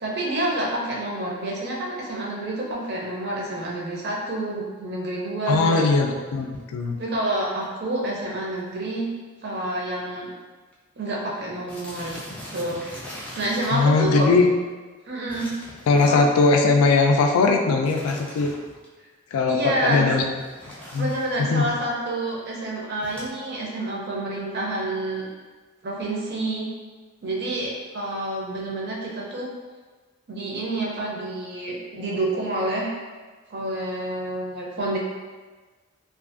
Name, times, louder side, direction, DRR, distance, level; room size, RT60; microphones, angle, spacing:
voice 1, 0.0-5.8 6.9-9.1 9.4-10.3 11.0-12.2 12.5-13.1 13.3-14.3 15.1-15.5 15.9-16.3 19.5-20.1 21.0-25.3 25.8-26.7 27.2-29.5 30.3-32.9 33.5-35.0, right 1 dB, 50° right, -3 dB, 0.5 m, -28 dB
voice 2, 5.5-7.0 13.7-14.5 15.9-18.5 19.3-20.3 20.9-21.1 21.4-21.6, left 3 dB, 90° left, 3 dB, 0.3 m, -20 dB
sound 1, 6.4-6.6 7.3-7.4 7.6-7.7 7.9-8.2 8.6-8.7 9.0-9.1 9.9-10.0 10.2-10.4 10.7-10.8 11.7-13.9 15.3-16.5 17.8-18.9 20.4-21.5 23.0-23.3, equal, 5° left, 0.3 m, -41 dB
2.5 x 2.4 x 2.4 m, 1.4 s
head